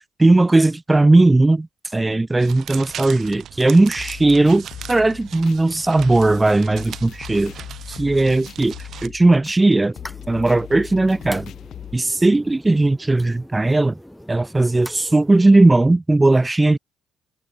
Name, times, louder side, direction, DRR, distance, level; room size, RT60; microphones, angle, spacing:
voice 1, 0.2-1.7 1.9-7.5 8.0-8.8 9.0-9.9 10.3-11.5 11.9-14.0 14.3-16.8, right 2 dB, 20° right, 0.7 m, -17 dB
sound 1, 2.4-9.1, right 10 dB, 65° right, 5.5 m, -38 dB
sound 2, 4.0-12.0, left 11 dB, 65° left, 4.9 m, -39 dB
sound 3, 9.9-15.6, equal, 5° left, 7.6 m, -42 dB
hypercardioid pair, 55°, 0 cm